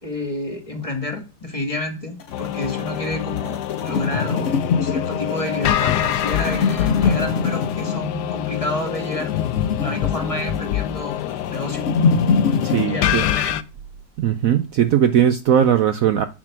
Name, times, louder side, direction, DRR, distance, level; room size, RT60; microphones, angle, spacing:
voice 1, 0.0-4.5 4.8-9.3 9.8-11.8 12.8-13.6, left 1 dB, 20° left, 1.5 m, -29 dB
sound 1, 2.2-12.9, left 5 dB, 50° left, 1.2 m, -24 dB
sound 2, 2.3-13.6, left 12 dB, 75° left, 1.2 m, -25 dB
voice 2, 12.6-13.2 14.2-16.3, right 9 dB, 65° right, 0.9 m, -18 dB
10.0 x 4.3 x 6.0 m
omnidirectional pair, 1.8 m